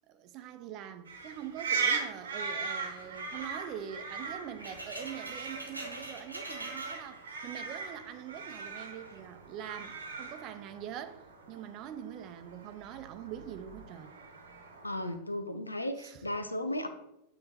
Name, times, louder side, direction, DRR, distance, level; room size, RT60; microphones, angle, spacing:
voice 1, 0.1-14.1 16.0-16.3, right 9 dB, 40° right, 0.6 m, -44 dB
sound 1, 1.1-15.2, right 5 dB, 65° right, 1.1 m, -39 dB
sound 2, 2.2-7.8 8.1-9.3 9.9-10.2, right 2 dB, 85° right, 1.2 m, -46 dB
voice 2, 14.8-16.9, left 1 dB, 85° left, 0.6 m, -35 dB
8.6 x 3.2 x 4.1 m
figure-of-eight pair, 90°, 0 cm